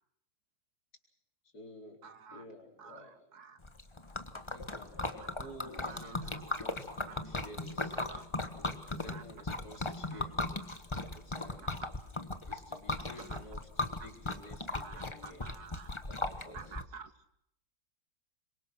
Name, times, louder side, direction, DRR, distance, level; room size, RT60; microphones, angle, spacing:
voice 1, 1.4-2.0 2.3-3.1 4.3-8.0 8.6-10.3 11.1-11.7 12.5-13.7 14.0-15.5 16.0-16.8, left 1 dB, 55° left, 2 dB, 5.0 m, -52 dB
voice 2, 2.0-2.4 2.8-3.6 5.0-5.1 5.4-7.2 8.0-8.3 9.0-9.2 10.1-10.2 11.6-11.7 13.0-13.4 14.8-15.9 16.3-17.1, right 6 dB, 60° right, 11 dB, 1.6 m, -50 dB
Liquid, 3.6-16.8, left 2 dB, 15° left, 1.2 m, -38 dB
26.5 x 23.0 x 6.1 m, 0.76 s
omnidirectional pair, 2.0 m